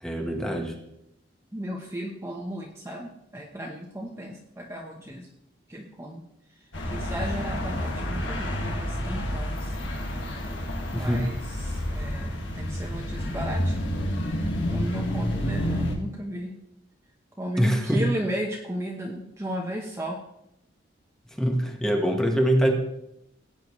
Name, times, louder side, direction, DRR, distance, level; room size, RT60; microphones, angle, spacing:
voice 1, 0.0-0.8 10.9-11.3 17.6-18.1 21.4-22.7, equal, 5° left, 3 dB, 1.4 m, -24 dB
voice 2, 1.5-5.3 5.7-6.3 6.9-9.9 10.9-14.0 14.5-16.5 17.4-20.2, equal, 15° right, -1 dB, 1.0 m, -35 dB
sound 1, 6.7-15.9, equal, 75° left, 2.0 m, -29 dB
17.0 x 9.0 x 3.2 m, 0.81 s
head